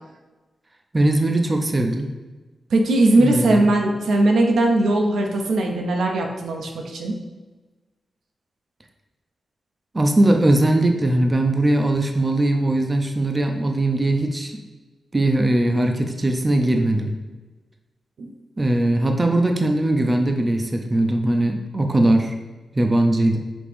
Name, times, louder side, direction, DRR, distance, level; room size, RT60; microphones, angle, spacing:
voice 1, 0.9-2.1 3.2-3.7 9.9-14.6 15.1-17.1 18.6-22.3 22.7-23.4, right 1 dB, 25° right, 3 dB, 0.4 m, -20 dB
voice 2, 2.7-7.2 18.2-18.3, right 2 dB, 90° right, 1 dB, 0.6 m, -19 dB
5.2 x 2.9 x 3.3 m, 1.2 s
wide cardioid pair, 100°, 0 cm